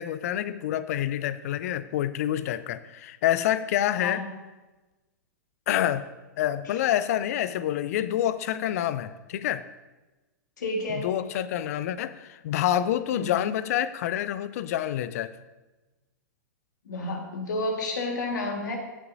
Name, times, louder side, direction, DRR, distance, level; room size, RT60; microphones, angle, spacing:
voice 1, 0.0-4.2 5.7-6.1 6.4-9.6 11.0-15.3, left 11 dB, 55° left, 15 dB, 0.5 m, -27 dB
voice 2, 10.6-11.1 13.1-13.5 16.9-18.8, left 2 dB, 70° left, 2 dB, 1.8 m, -31 dB
16.0 x 6.8 x 2.7 m, 1.1 s
figure-of-eight pair, 110°, 10 cm